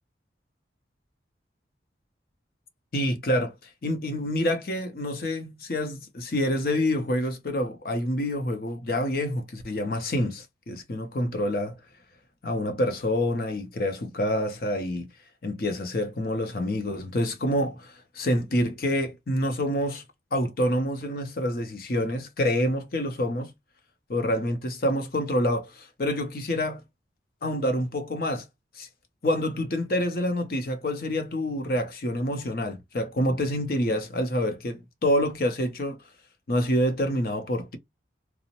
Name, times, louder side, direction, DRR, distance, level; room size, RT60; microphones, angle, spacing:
voice 1, 2.9-3.5 3.8-11.8 12.4-15.1 15.4-20.0 20.3-23.5 24.1-26.8 27.4-28.5 28.8-28.9 29.2-36.0 36.5-37.8, left 1 dB, 55° left, 0.6 m, -27 dB
2.9 x 2.0 x 2.9 m
head